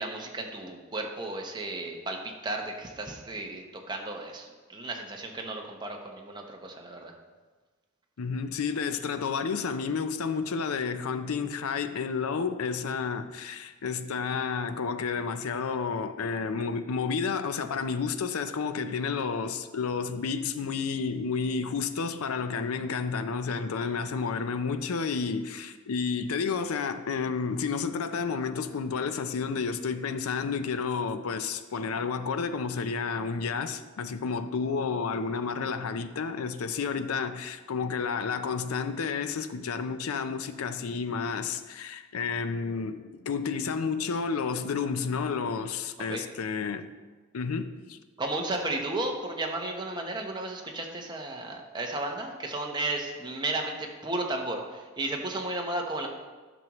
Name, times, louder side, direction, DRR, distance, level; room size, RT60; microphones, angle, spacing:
voice 1, 0.0-7.1 46.1-46.2 48.2-56.1, right 2 dB, 20° right, 0.8 m, -34 dB
voice 2, 8.2-46.9 47.3-48.0, left 5 dB, 90° left, 0.5 m, -31 dB
10.5 x 6.1 x 3.0 m
head